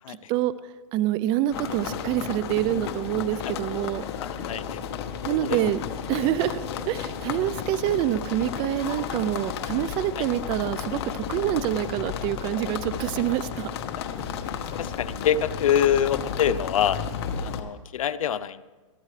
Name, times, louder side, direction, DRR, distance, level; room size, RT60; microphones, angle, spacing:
voice 1, 0.1-4.0 5.2-5.8 6.1-13.7, right 13 dB, 30° right, 16 dB, 0.4 m, -26 dB
sound 1, 1.5-17.6, left 8 dB, 50° left, 1.2 m, -33 dB
voice 2, 4.2-4.8 5.4-5.6 10.2-10.3 14.8-17.0 17.4-18.6, left 9 dB, 85° left, 16 dB, 0.6 m, -25 dB
22.0 x 13.5 x 3.3 m, 1.3 s
hypercardioid pair, 140°, 17 cm